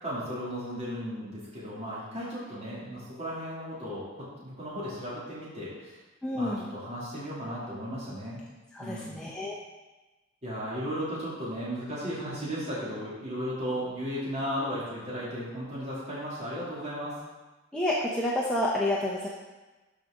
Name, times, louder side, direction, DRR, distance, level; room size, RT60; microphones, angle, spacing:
voice 1, 0.0-6.0 6.3-8.4 8.8-9.2 10.4-17.1, equal, 35° right, -9 dB, 2.8 m, -35 dB
voice 2, 6.2-6.7 8.7-9.6 17.7-19.3, left 1 dB, 5° left, -6 dB, 0.9 m, -29 dB
13.0 x 5.0 x 3.8 m, 1.2 s
head